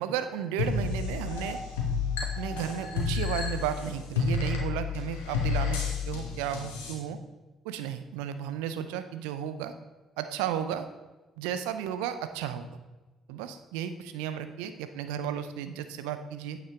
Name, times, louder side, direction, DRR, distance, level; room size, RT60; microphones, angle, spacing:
voice 1, 0.0-1.6 2.4-7.2 7.6-9.7 10.2-10.9 11.4-12.7 13.3-16.6, right 9 dB, 75° right, 10 dB, 0.5 m, -34 dB
sound 1, 0.6-6.9, left 5 dB, 80° left, 1.4 m, -31 dB
8.7 x 6.9 x 3.7 m, 1.2 s
hypercardioid pair, 50°, 0 cm